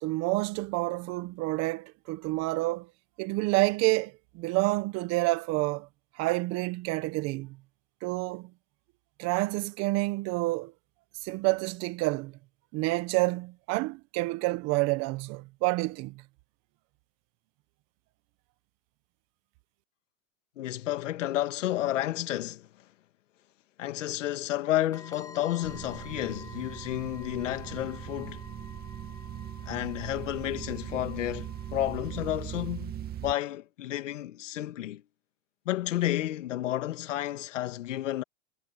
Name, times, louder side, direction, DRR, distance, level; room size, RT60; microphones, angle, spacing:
voice 1, 0.0-2.9 3.2-5.9 6.2-7.6 8.0-8.5 9.2-10.7 11.2-12.4 12.7-16.2, right 22 dB, 45° right, 1.4 m, -28 dB
voice 2, 20.6-22.7 23.8-28.4 29.7-32.9 33.2-35.0 35.7-38.2, left 13 dB, 85° left, 2.2 m, -31 dB
sound 1, 24.9-32.3, left 3 dB, 10° left, 6.6 m, -50 dB
sound 2, 25.6-33.3, right 11 dB, 25° right, 2.1 m, -40 dB
supercardioid pair, 130°, 36 cm